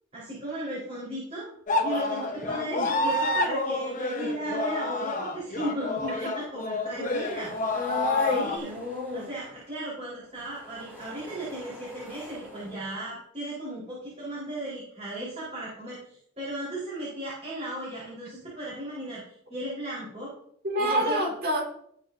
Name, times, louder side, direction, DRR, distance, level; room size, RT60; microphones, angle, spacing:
voice 1, 0.1-1.5 1.8-7.5 8.3-8.7 9.1-20.3 20.8-21.2, right 1 dB, 30° right, -8 dB, 4.5 m, -36 dB
sound 1, 1.7-8.6, left 2 dB, 40° left, 1.1 m, -29 dB
sound 2, 6.7-9.8 10.2-12.8, left 1 dB, 10° right, 4.0 m, -47 dB
voice 2, 7.7-9.3 20.6-21.6, left 1 dB, 45° right, 0 dB, 2.6 m, -28 dB
18.5 x 6.2 x 2.7 m, 0.67 s
head